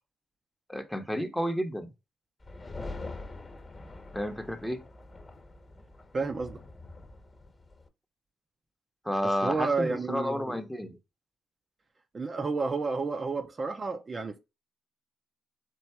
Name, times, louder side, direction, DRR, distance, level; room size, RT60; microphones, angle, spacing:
voice 1, 0.7-1.9 4.1-4.8 9.0-11.0, equal, 5° left, 0.8 m, -31 dB
sound 1, 2.4-7.9, left 2 dB, 25° left, 1.1 m, -44 dB
voice 2, 6.1-6.6 9.4-10.6 12.1-14.4, right 4 dB, 35° right, 0.5 m, -31 dB
4.6 x 2.5 x 4.4 m
cardioid pair, 90°, 0 cm